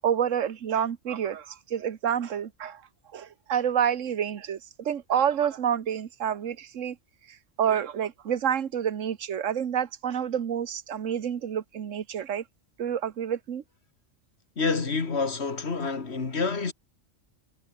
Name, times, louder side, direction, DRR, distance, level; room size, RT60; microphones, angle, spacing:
voice 1, 0.0-2.8 3.1-7.0 7.6-12.4 12.8-13.6, right 9 dB, 75° right, 1.5 m, -28 dB
voice 2, 14.6-16.7, left 4 dB, 55° left, 2.2 m, -28 dB
omnidirectional pair, 1.3 m